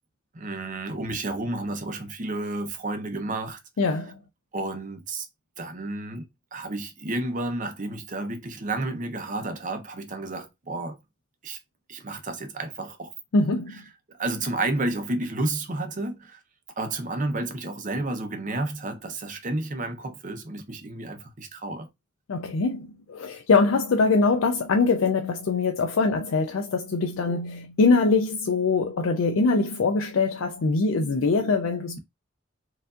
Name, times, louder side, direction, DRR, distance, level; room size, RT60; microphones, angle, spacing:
voice 1, 0.3-3.6 4.5-5.3 5.6-6.2 6.5-11.0 11.4-11.6 11.9-13.1 13.7-13.8 14.1-16.4 16.8-21.9 27.3-27.4, right 2 dB, 40° right, 0.8 m, -31 dB
voice 2, 3.8-4.1 13.3-13.8 22.3-32.0, left 4 dB, 80° left, 0.4 m, -23 dB
4.6 x 2.6 x 2.4 m
head